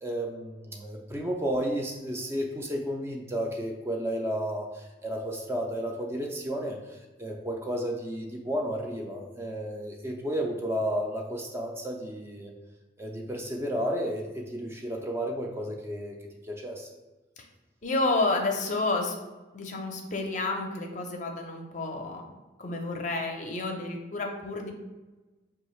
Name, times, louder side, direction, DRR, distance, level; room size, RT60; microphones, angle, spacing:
voice 1, 0.0-12.5 13.0-16.2 16.4-16.9, equal, 15° right, 0 dB, 0.4 m, -32 dB
voice 2, 17.8-19.1 19.5-22.2 22.6-24.7, left 2 dB, 40° left, 2 dB, 0.5 m, -30 dB
5.3 x 2.3 x 3.1 m, 1.2 s
head